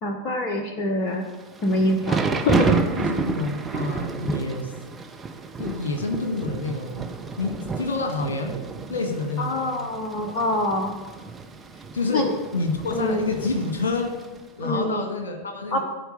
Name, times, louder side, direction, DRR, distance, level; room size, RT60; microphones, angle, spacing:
voice 1, 0.0-1.3 1.6-2.2 2.4-2.7 9.4-10.9 12.1-12.3 12.9-13.3 14.6-15.0 15.7-15.8, left 1 dB, 35° left, 4 dB, 1.1 m, -24 dB
Thunder / Rain, 1.3-14.4, right 4 dB, 15° right, 0.9 m, -30 dB
voice 2, 2.9-4.7 5.6-7.1 7.4-8.6 8.9-9.7 11.7-14.2 14.6-15.8, left 3 dB, 65° left, 4 dB, 1.7 m, -28 dB
13.5 x 4.6 x 6.7 m, 1.2 s
figure-of-eight pair, 90°, 0 cm